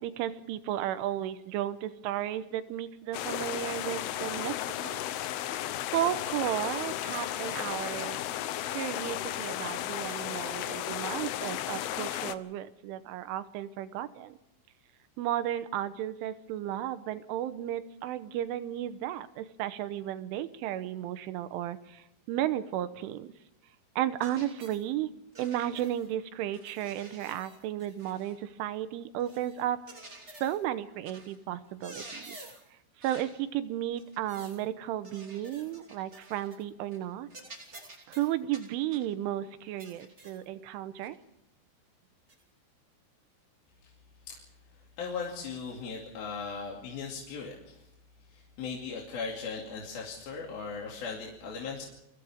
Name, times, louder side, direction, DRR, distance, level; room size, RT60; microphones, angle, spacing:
voice 1, 0.0-5.0 5.9-8.2 8.7-14.4 15.2-23.3 24.0-29.8 30.3-32.4 33.0-37.3 38.1-41.2, right 12 dB, 80° right, 12 dB, 3.3 m, -34 dB
sound 1, 3.1-12.4, left 13 dB, 90° left, 2.2 m, -34 dB
sound 2, 24.2-24.8 25.3-26.1 26.5-28.4 29.2-30.7 31.0-31.4 31.7-32.7 33.0-33.4 34.0-34.6 35.0-36.6 36.9-37.0 37.3-39.1 39.8-40.4 41.0-41.2 42.3-42.4, right 2 dB, 20° right, 1.8 m, -50 dB
voice 2, 45.0-47.8 48.3-51.8, left 5 dB, 55° left, -2 dB, 4.0 m, -38 dB
29.5 x 24.0 x 3.6 m, 0.85 s
omnidirectional pair, 5.8 m